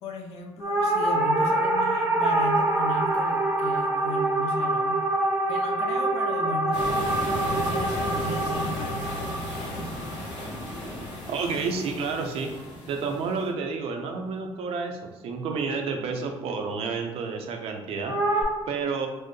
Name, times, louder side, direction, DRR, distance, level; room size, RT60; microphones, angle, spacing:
voice 1, 0.0-5.0 5.5-9.2 10.0-10.1, left 2 dB, 70° left, 4 dB, 0.6 m, -36 dB
sound 1, 0.6-11.1 18.1-18.4, right 2 dB, 20° right, 0.7 m, -25 dB
sound 2, 6.7-13.5, left 1 dB, 45° left, 1.3 m, -35 dB
voice 2, 11.3-12.5 12.9-19.1, right 4 dB, 65° right, 4 dB, 0.6 m, -30 dB
4.4 x 2.1 x 3.1 m, 1.2 s
cardioid pair, 155°, 11 cm